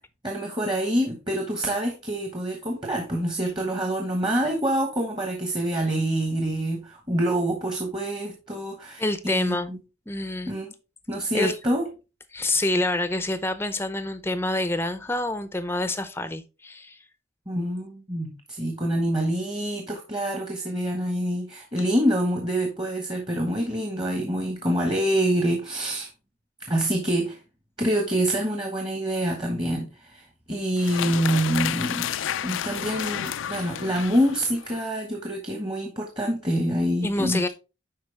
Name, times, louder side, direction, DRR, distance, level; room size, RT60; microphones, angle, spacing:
voice 1, 0.2-9.8 10.5-10.7 11.1-11.9 17.5-26.1 26.7-27.4 27.8-32.1 32.4-37.5, right 1 dB, 25° right, 1.2 m, -26 dB
voice 2, 9.0-9.7 10.1-10.5 11.3-11.5 12.3-17.0 37.0-37.5, left 2 dB, 10° left, 0.6 m, -27 dB
sound 1, 30.8-34.9, left 10 dB, 70° left, 0.4 m, -31 dB
10.5 x 4.3 x 3.3 m
head